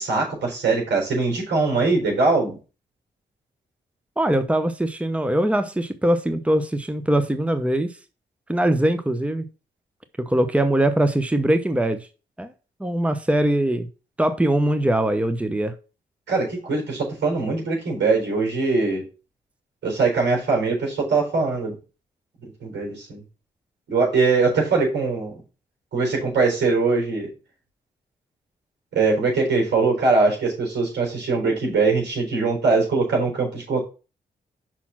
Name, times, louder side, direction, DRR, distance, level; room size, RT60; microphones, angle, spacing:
voice 1, 0.0-2.6 16.3-19.0 19.8-21.8 22.4-23.2 23.9-25.3 25.9-27.3 28.9-33.8, right 3 dB, 80° right, 4.1 m, -22 dB
voice 2, 4.2-7.9 8.5-9.5 10.2-12.1 12.4-12.5 12.8-13.9 14.2-15.7, right 1 dB, 5° right, 0.9 m, -22 dB
6.1 x 4.1 x 5.8 m
cardioid pair, 55°, 18 cm